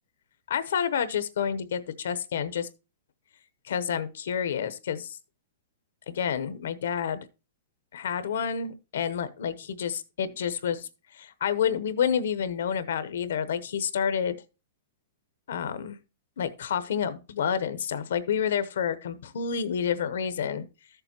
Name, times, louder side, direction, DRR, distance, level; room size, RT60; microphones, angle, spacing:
voice 1, 0.5-2.7 3.6-5.2 6.1-7.2 7.9-10.9 11.1-14.3 15.5-16.0 16.4-20.6, left 7 dB, 75° left, 0.8 m, -29 dB
13.5 x 6.8 x 2.9 m
hypercardioid pair, 165°, 0 cm